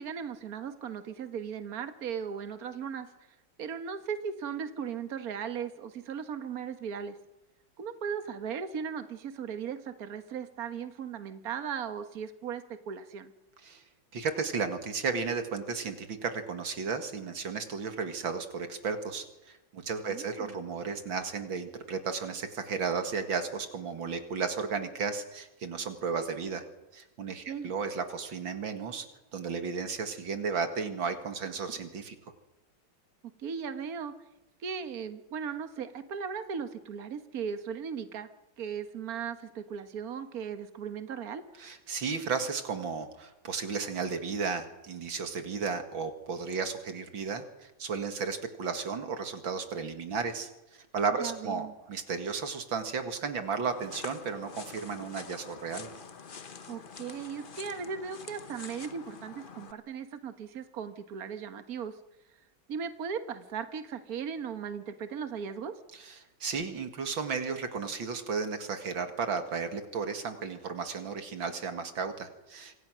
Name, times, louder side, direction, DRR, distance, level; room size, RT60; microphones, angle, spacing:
voice 1, 0.0-3.1 3.6-7.2 7.8-13.3 20.1-20.6 27.5-27.7 33.4-34.1 34.6-38.3 38.6-41.4 51.2-51.7 56.7-62.0 62.7-65.7, right 7 dB, 50° right, 9 dB, 1.8 m, -37 dB
voice 2, 14.1-26.7 26.9-29.1 29.3-32.2 41.6-55.9 65.9-72.8, right 5 dB, 75° right, 7 dB, 2.7 m, -34 dB
sound 1, 53.7-59.7, left 5 dB, 35° left, 0.9 m, -46 dB
26.0 x 26.0 x 6.3 m, 1.0 s
omnidirectional pair, 2.1 m